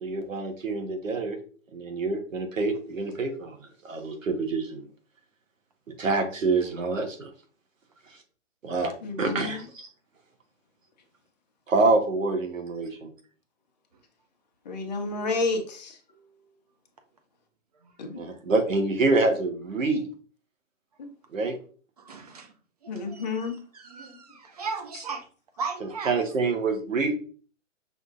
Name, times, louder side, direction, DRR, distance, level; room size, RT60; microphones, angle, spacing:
voice 1, 0.0-1.4 1.7-3.6 3.8-4.8 5.9-7.3 8.6-8.9 9.2-9.9 11.7-13.1 18.2-20.1 21.3-21.6 25.8-27.2, right 3 dB, 85° right, 1.3 m, -26 dB
voice 2, 9.0-9.6 14.7-16.0 18.0-18.2 21.0-21.1 22.9-23.6, left 3 dB, 35° left, 0.7 m, -30 dB
voice 3, 22.0-22.5 22.8-25.3 25.6-26.2 27.0-27.2, right 4 dB, 30° right, 0.5 m, -37 dB
6.1 x 2.7 x 2.5 m
hypercardioid pair, 155°, 38 cm